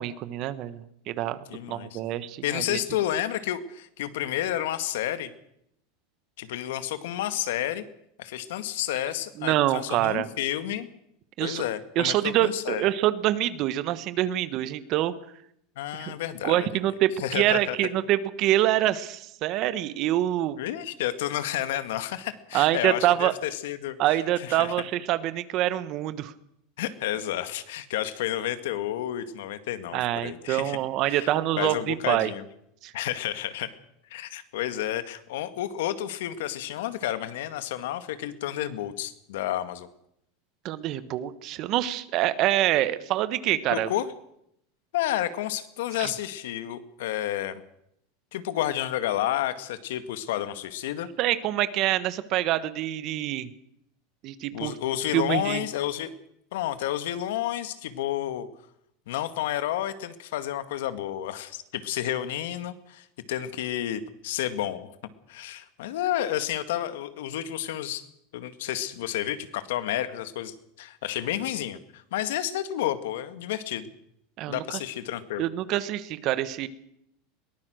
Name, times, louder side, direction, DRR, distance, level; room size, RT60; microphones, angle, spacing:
voice 1, 0.0-1.4 1.7-2.8 9.4-10.3 11.4-11.6 11.9-15.1 16.0-16.1 16.4-20.6 22.5-23.3 24.0-26.3 29.9-32.3 32.8-32.9 40.6-43.9 46.0-46.1 51.2-53.5 54.2-54.7 55.1-55.6 74.4-74.8 75.4-76.7, right 13 dB, 40° right, 14 dB, 1.3 m, -26 dB
voice 2, 1.5-2.0 2.4-5.3 6.4-7.8 8.2-10.9 11.4-12.9 15.8-16.7 17.2-17.8 20.6-24.7 26.8-30.8 31.1-31.3 31.6-32.4 32.9-33.7 34.1-39.9 43.7-44.1 44.9-47.6 48.3-51.1 54.5-56.1 56.5-58.5 59.1-64.9 65.3-68.0 68.3-73.9 74.5-75.4, left 12 dB, 75° left, 11 dB, 2.0 m, -31 dB
22.0 x 19.0 x 6.5 m, 0.74 s
supercardioid pair, 160°, 0 cm